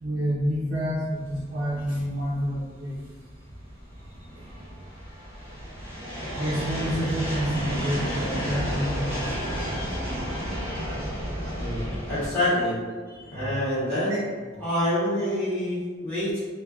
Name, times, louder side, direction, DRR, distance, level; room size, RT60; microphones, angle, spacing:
voice 1, 0.0-3.0 4.4-4.5 6.3-10.1 11.6-11.8 13.1-13.6 14.1-14.2, equal, 45° right, -6 dB, 0.4 m, -29 dB
sound 1, 1.3-12.3, equal, 50° left, 1.4 m, -32 dB
voice 2, 12.1-12.7 13.3-14.2 14.6-16.4, left 1 dB, 10° left, -13 dB, 1.3 m, -26 dB
3.1 x 2.2 x 2.3 m, 1.5 s
head